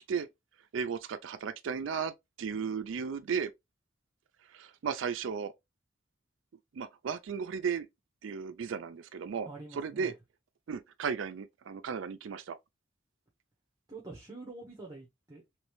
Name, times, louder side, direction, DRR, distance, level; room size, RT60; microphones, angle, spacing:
voice 1, 0.7-3.5 4.5-5.5 6.7-7.9 8.2-10.1 10.7-12.6, right 6 dB, 85° right, 0.4 m, -35 dB
voice 2, 9.5-10.1 13.9-15.6, right 3 dB, 20° right, 1.0 m, -46 dB
3.1 x 3.1 x 3.1 m
head